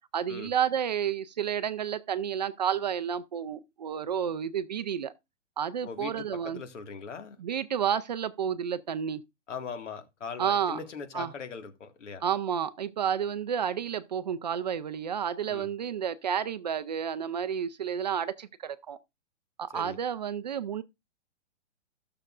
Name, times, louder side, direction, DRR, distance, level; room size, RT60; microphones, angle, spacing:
voice 1, 0.1-5.1 5.6-6.6 7.4-9.2 10.4-10.8 11.1-11.3 12.2-19.0 19.6-20.8, right 8 dB, 40° right, 0.4 m, -31 dB
voice 2, 5.8-7.4 9.5-12.2 15.5-15.7 19.7-20.0, left 5 dB, 75° left, 1.9 m, -40 dB
15.0 x 6.6 x 2.4 m
hypercardioid pair, 155°, 36 cm